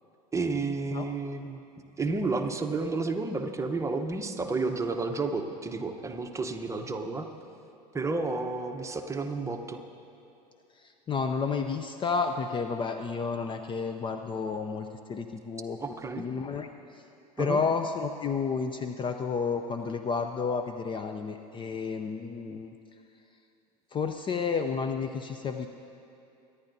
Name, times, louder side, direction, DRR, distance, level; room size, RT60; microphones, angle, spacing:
voice 1, 0.3-1.6 2.0-7.3 7.9-9.8 15.8-16.2 17.4-17.6, right 3 dB, 15° right, 5 dB, 0.9 m, -31 dB
voice 2, 11.1-15.8 16.2-16.7 17.4-22.7 23.9-25.7, left 5 dB, 25° left, 7 dB, 0.5 m, -31 dB
24.0 x 11.0 x 2.7 m, 2.7 s
hypercardioid pair, 85°, 21 cm